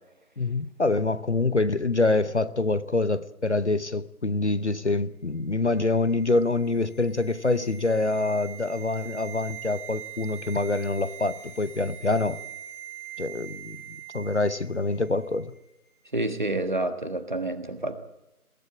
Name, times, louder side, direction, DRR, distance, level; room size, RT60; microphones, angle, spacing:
voice 1, 0.4-12.4 13.2-15.5, left 3 dB, 50° left, 15 dB, 0.8 m, -26 dB
sound 1, 5.7-15.0 15.2-15.4, right 10 dB, 5° right, 3.6 m, -43 dB
voice 2, 16.1-17.9, right 2 dB, 30° right, 8 dB, 1.4 m, -28 dB
21.5 x 16.0 x 8.7 m, 0.94 s
figure-of-eight pair, 170°, 44 cm